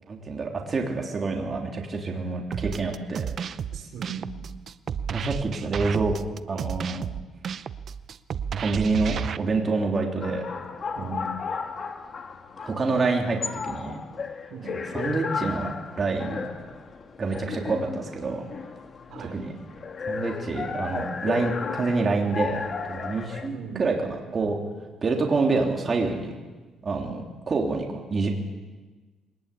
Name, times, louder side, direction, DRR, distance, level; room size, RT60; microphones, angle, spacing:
voice 1, 0.1-3.2 5.1-6.1 6.5-7.0 8.6-10.4 11.0-11.3 12.6-14.0 14.9-16.5 17.2-18.4 19.2-19.5 20.1-22.6 22.9-24.6 25.0-26.3 26.8-27.8 28.1-28.3, right 3 dB, 30° right, 0 dB, 3.3 m, -27 dB
sound 1, 2.5-9.4, right 7 dB, 45° right, 0.7 m, -32 dB
voice 2, 3.7-4.4 10.9-11.4 14.5-14.9 19.1-19.4 23.5-23.9, right 6 dB, 60° right, 6 dB, 3.2 m, -38 dB
sound 2, 10.2-23.5, left 5 dB, 35° left, 1.7 m, -34 dB
22.0 x 19.5 x 8.6 m, 1.3 s
cardioid pair, 145°, 0 cm